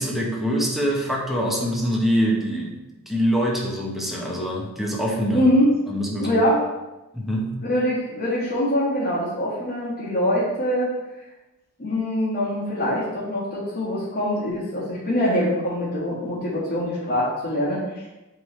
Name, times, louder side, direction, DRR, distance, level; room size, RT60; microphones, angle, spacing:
voice 1, 0.0-2.8 3.1-5.5 5.9-6.4 7.1-7.6, equal, ahead, -3 dB, 1.1 m, -24 dB
voice 2, 5.3-5.7 6.2-6.6 7.6-10.9 11.8-18.1, equal, 45° left, -11 dB, 1.9 m, -23 dB
8.3 x 3.8 x 3.2 m, 1.0 s
head